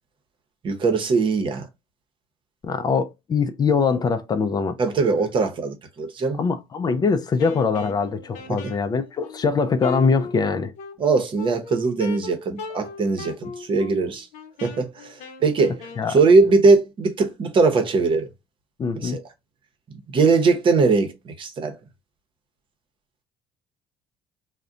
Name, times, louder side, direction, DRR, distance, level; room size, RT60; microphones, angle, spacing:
voice 1, 0.6-1.7 4.8-6.4 8.5-8.6 11.0-14.3 14.6-15.8 16.1-18.3 19.0-19.2 20.1-21.7, right 4 dB, 40° right, 0.8 m, -20 dB
voice 2, 2.6-4.8 6.4-10.7 16.0-16.2 18.8-19.2, left 5 dB, 35° left, 0.4 m, -22 dB
Wind instrument woodwind instrument, 7.4-16.4, left 4 dB, 70° left, 0.7 m, -38 dB
2.4 x 2.1 x 3.7 m
supercardioid pair, 75°, 13 cm